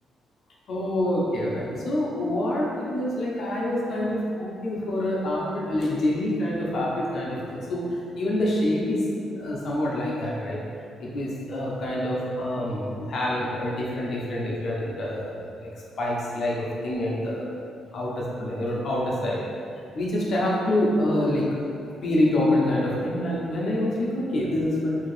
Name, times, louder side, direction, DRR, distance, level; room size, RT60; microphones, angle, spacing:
voice 1, 0.7-9.1 9.4-10.6 11.0-15.7 16.0-17.4 17.9-19.4 19.9-21.5 21.8-25.0, left 1 dB, 55° left, -5 dB, 0.8 m, -26 dB
2.9 x 2.8 x 3.2 m, 2.5 s
cardioid pair, 90°, 0 cm